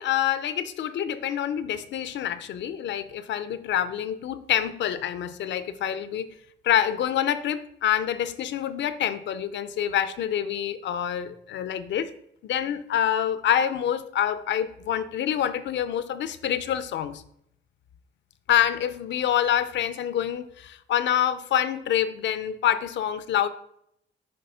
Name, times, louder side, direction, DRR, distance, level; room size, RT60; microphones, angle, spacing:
voice 1, 0.0-6.3 6.6-12.1 12.4-17.2 18.5-23.5, left 10 dB, 65° left, 13 dB, 0.5 m, -26 dB
6.7 x 3.1 x 5.5 m, 0.74 s
cardioid pair, 90°, 20 cm